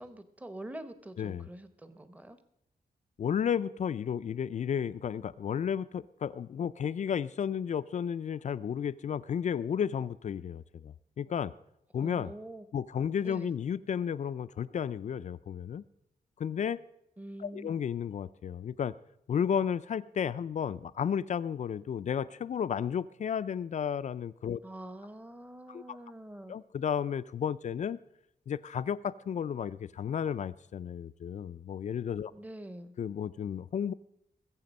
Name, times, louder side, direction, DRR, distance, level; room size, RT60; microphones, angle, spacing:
voice 1, 0.0-2.4 12.0-12.7 13.2-13.5 17.2-17.8 24.6-26.6 32.3-32.9, right 1 dB, 10° right, 11 dB, 0.8 m, -45 dB
voice 2, 3.2-11.5 11.9-12.3 12.7-15.8 16.4-16.8 17.4-18.9 19.3-24.6 25.7-26.0 26.5-28.0 28.5-32.3 33.0-33.9, left 8 dB, 50° left, 14 dB, 0.4 m, -33 dB
21.0 x 7.5 x 5.3 m, 0.80 s
wide cardioid pair, 140°, 16 cm